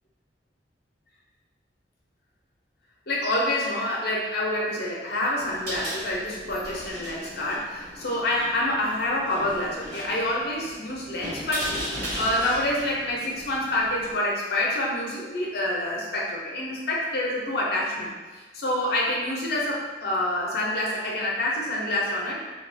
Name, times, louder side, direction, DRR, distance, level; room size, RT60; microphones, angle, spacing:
voice 1, 3.1-11.7 12.2-22.4, left 1 dB, 60° left, -3 dB, 0.6 m, -27 dB
sound 1, 5.4-14.1, equal, 60° right, 1.1 m, -37 dB
2.3 x 2.3 x 2.6 m, 1.3 s
head